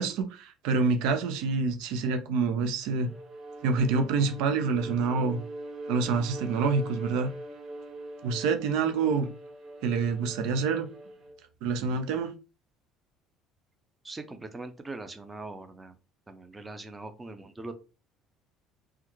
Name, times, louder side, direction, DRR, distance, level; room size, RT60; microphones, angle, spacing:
voice 1, 0.0-3.1 3.6-5.4 5.9-7.3 8.2-9.3 9.8-10.9 11.6-12.3, right 4 dB, 80° right, 0.6 m, -27 dB
Bowed string instrument, 3.0-11.4, right 2 dB, 50° right, 1.9 m, -42 dB
voice 2, 14.0-15.9 16.3-17.7, right 2 dB, 15° right, 0.6 m, -41 dB
3.5 x 2.2 x 3.1 m
supercardioid pair, 95°, 0 cm